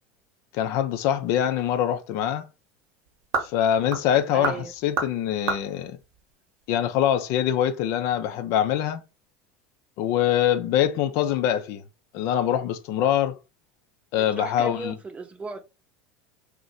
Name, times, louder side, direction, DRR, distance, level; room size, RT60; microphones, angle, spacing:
voice 1, 0.5-2.4 3.4-6.0 6.7-9.0 10.0-11.8 12.1-13.4 14.1-14.9, left 10 dB, 60° left, 0.4 m, -24 dB
sound 1, 1.2-7.0, right 4 dB, 65° right, 0.9 m, -34 dB
voice 2, 4.3-4.7 14.3-15.6, right 3 dB, 20° right, 0.6 m, -35 dB
2.6 x 2.1 x 4.0 m
hypercardioid pair, 80°, 6 cm